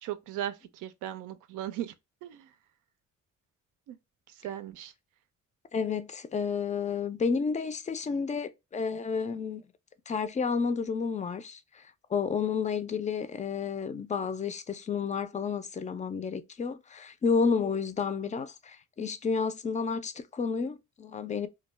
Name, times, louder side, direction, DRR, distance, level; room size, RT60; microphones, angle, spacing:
voice 1, 0.0-1.9 2.2-2.5 3.9-4.0 4.4-4.9, right 12 dB, 90° right, 0.5 m, -37 dB
voice 2, 5.7-9.6 10.1-21.5, left 5 dB, 25° left, 0.3 m, -31 dB
2.2 x 2.2 x 3.1 m
cardioid pair, 90°, 30 cm